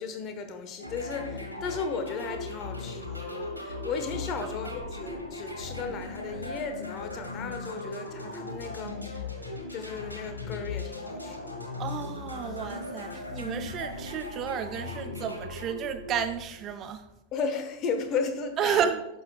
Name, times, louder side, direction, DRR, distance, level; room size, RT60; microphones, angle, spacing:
voice 1, 0.0-9.2 9.7-11.6 17.3-18.9, left 5 dB, 35° left, 1.2 m, -35 dB
sound 1, 0.8-16.7, left 2 dB, 85° left, 1.7 m, -38 dB
voice 2, 11.8-17.0 18.6-19.0, right 8 dB, 30° right, 0.5 m, -31 dB
11.5 x 6.8 x 2.3 m
figure-of-eight pair, 90°, 0 cm